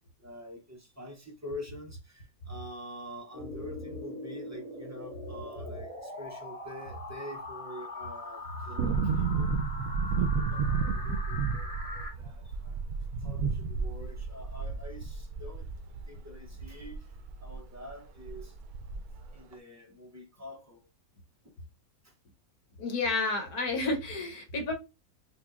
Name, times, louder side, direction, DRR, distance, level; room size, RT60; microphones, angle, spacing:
voice 1, 0.2-9.6 10.1-12.8 13.2-15.7 16.1-17.1 17.4-18.5 19.3-20.8 21.4-21.6 22.0-22.1, left 1 dB, 25° right, 0.3 m, -46 dB
sound 1, 3.3-12.1, left 2 dB, 25° left, 1.5 m, -42 dB
sound 2, 8.8-17.6 17.9-18.0 18.2-19.3 19.5-19.6, right 5 dB, 80° right, 1.0 m, -32 dB
voice 2, 22.8-24.7, left 3 dB, 85° left, 1.6 m, -30 dB
5.4 x 2.5 x 2.4 m
omnidirectional pair, 1.6 m